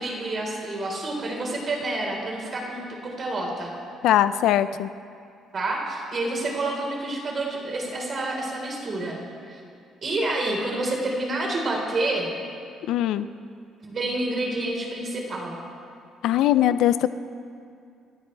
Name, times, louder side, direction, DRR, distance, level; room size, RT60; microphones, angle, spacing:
voice 1, 0.0-3.7 5.5-9.2 9.5-9.6 10.0-12.3 13.8-15.6, right 2 dB, 40° right, -1 dB, 4.5 m, -28 dB
voice 2, 4.0-4.9 12.9-13.3 16.2-17.1, left 12 dB, 80° left, 13 dB, 0.5 m, -20 dB
28.5 x 13.5 x 3.5 m, 2.4 s
cardioid pair, 120°, 0 cm